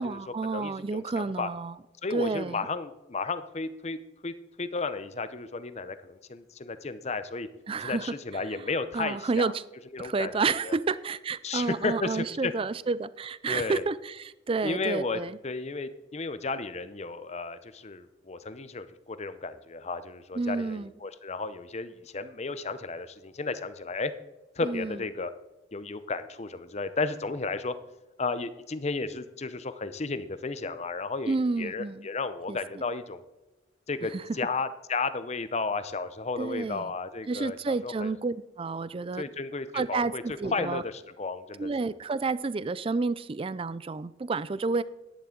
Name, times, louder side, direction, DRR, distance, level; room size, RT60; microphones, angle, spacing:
voice 1, 0.0-1.7 2.1-2.7 7.7-8.1 8.9-9.6 10.0-15.4 20.3-20.9 24.6-25.0 31.3-32.1 32.5-32.6 34.0-34.2 36.4-36.9 37.3-39.2 39.7-40.8 41.6-44.8, right 4 dB, 30° right, 17 dB, 0.3 m, -30 dB
voice 2, 0.5-1.5 2.0-4.0 4.2-7.5 7.8-9.5 9.9-10.3 10.6-10.8 11.4-12.5 13.5-13.8 14.6-24.1 24.6-25.3 25.7-27.7 28.2-33.2 33.9-34.1 34.4-38.1 39.2-40.2 40.5-41.9, left 3 dB, 35° left, 12 dB, 0.7 m, -33 dB
11.0 x 10.5 x 3.9 m, 1.0 s
head